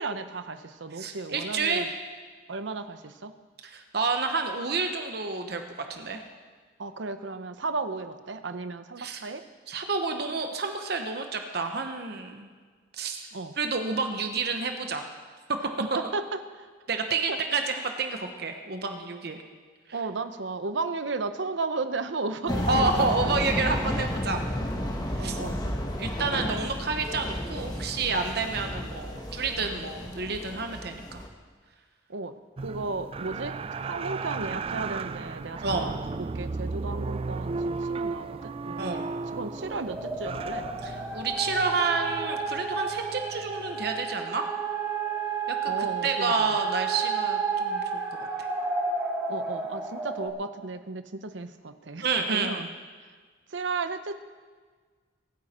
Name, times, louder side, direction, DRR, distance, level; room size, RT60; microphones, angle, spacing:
voice 1, 0.0-1.9 2.5-3.3 6.8-9.4 13.3-13.6 15.8-16.7 17.3-17.4 19.9-23.1 25.1-25.7 26.3-26.6 32.1-32.4 32.6-40.8 45.7-46.6 49.3-52.7 53.5-54.2, right 3 dB, 75° right, 10 dB, 0.8 m, -34 dB
voice 2, 0.9-1.9 3.6-5.6 5.9-6.2 9.0-9.2 9.7-12.5 12.9-13.3 13.6-15.0 16.9-19.4 22.7-24.4 25.1-25.4 26.0-31.2 35.6-35.9 38.8-39.0 40.8-44.5 45.5-48.0 48.4-48.5 52.0-52.6, right 4 dB, 55° right, 5 dB, 1.0 m, -29 dB
sound 1, 22.5-31.3, equal, 20° left, 1.2 m, -32 dB
sound 2, 32.6-44.0 44.3-44.4, right 4 dB, 30° right, 0.3 m, -35 dB
sound 3, 38.9-50.3, right 5 dB, 5° right, 1.8 m, -32 dB
23.5 x 9.5 x 4.4 m, 1.5 s
head